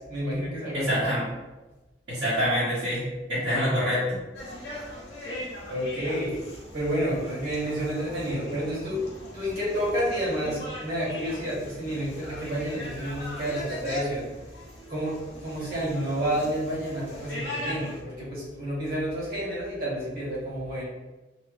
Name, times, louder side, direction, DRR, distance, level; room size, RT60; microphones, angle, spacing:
voice 1, 0.1-1.0 5.7-6.4 6.7-9.0 9.3-14.3 14.9-15.2 15.4-20.9, equal, 60° right, -6 dB, 1.3 m, -30 dB
voice 2, 0.7-1.2 2.1-3.0 3.3-4.0, equal, 85° right, -12 dB, 1.3 m, -25 dB
sound 1, 4.3-18.0, left 1 dB, 65° left, 0.9 m, -39 dB
3.0 x 2.2 x 3.1 m, 1.1 s
head